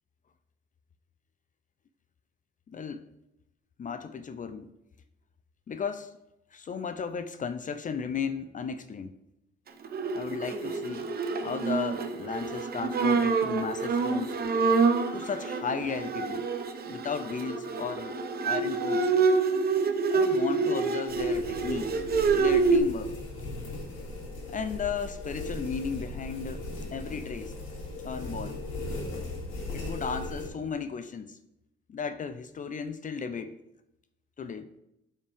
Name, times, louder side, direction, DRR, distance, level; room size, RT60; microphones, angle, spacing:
voice 1, 2.7-3.0 3.8-4.7 5.7-6.1 6.5-9.2 10.1-11.1 11.4-14.4 15.1-16.5 16.9-19.1 20.1-22.0 22.3-23.2 24.5-27.6 28.0-28.6 29.7-31.4 31.9-33.6 34.4-34.7, left 6 dB, 40° left, 11 dB, 0.6 m, -35 dB
Bowed string instrument, 9.8-22.8, right 4 dB, 50° right, 0.9 m, -27 dB
sound 1, 21.1-30.5, left 2 dB, 90° left, 2.7 m, -38 dB
11.5 x 5.6 x 3.5 m, 0.87 s
cardioid pair, 90°, 20 cm